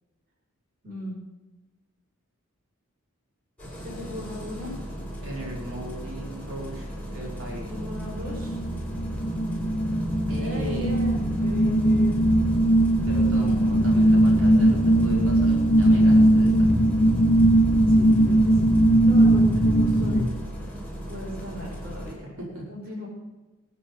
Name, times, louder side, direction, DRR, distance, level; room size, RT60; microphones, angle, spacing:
voice 1, 0.8-1.2 3.8-4.8 7.7-8.6 10.4-12.3 17.9-20.3 21.1-22.4 22.7-23.1, left 1 dB, 40° right, -2 dB, 4.9 m, -37 dB
Engine starting, 3.6-22.1, equal, 5° left, 4.3 m, -37 dB
voice 2, 5.2-7.7 10.3-10.9 13.1-16.7 22.4-22.7, equal, 65° right, -3 dB, 5.0 m, -37 dB
sound 1, 7.7-20.2, right 1 dB, 25° left, 1.4 m, -20 dB
21.0 x 8.3 x 5.5 m, 1.1 s
head